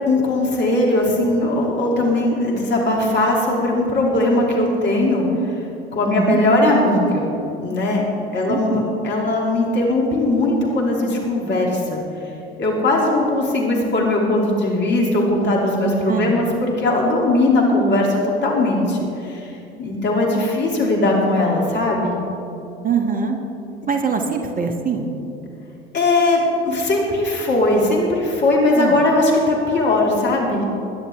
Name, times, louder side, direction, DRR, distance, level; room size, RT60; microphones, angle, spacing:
voice 1, 0.0-5.3 5.9-7.3 7.6-8.0 8.3-12.0 12.6-19.5 19.8-22.2 25.9-30.6, left 2 dB, 35° left, -2 dB, 2.8 m, -19 dB
voice 2, 8.5-8.8 16.1-16.4 22.8-23.4 23.9-25.1 28.7-29.1, right 6 dB, 25° right, 4 dB, 1.3 m, -23 dB
20.5 x 9.9 x 3.5 m, 2.8 s
figure-of-eight pair, 70°, 32 cm